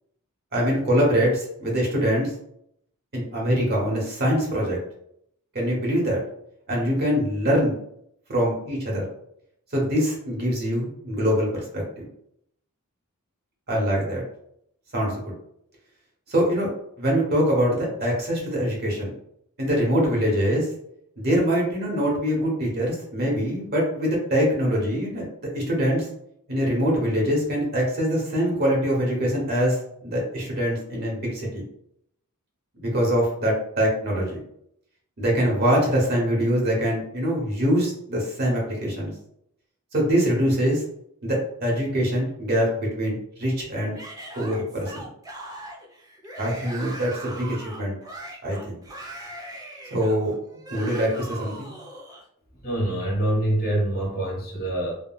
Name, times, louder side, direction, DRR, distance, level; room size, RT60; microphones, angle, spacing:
voice 1, 0.5-2.3 3.1-4.8 5.5-6.2 6.7-7.8 8.3-9.0 9.7-12.0 13.7-14.2 14.9-15.3 16.3-16.7 17.0-19.1 19.6-20.7 21.2-25.3 25.5-26.1 26.5-31.6 32.8-34.4 35.2-39.1 39.9-40.8 41.2-44.0 44.4-45.1 46.4-48.0 48.4-48.8 49.9-50.3 50.7-51.7, equal, 45° right, -2 dB, 1.0 m, -24 dB
Yell / Screaming, 43.9-52.2, right 2 dB, 15° right, 0.5 m, -40 dB
voice 2, 52.6-54.9, right 1 dB, 45° left, -3 dB, 1.2 m, -25 dB
3.6 x 2.2 x 2.3 m, 0.72 s
head